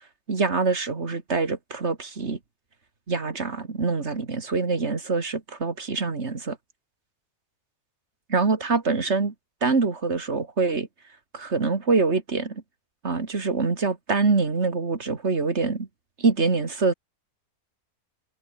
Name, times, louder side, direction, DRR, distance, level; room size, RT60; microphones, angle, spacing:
voice 1, 0.3-2.4 3.1-6.6 8.3-9.3 9.6-10.9 11.3-12.6 13.0-15.9 16.2-16.9, right 4 dB, 45° right, 2.4 m, -25 dB
omnidirectional pair, 1.6 m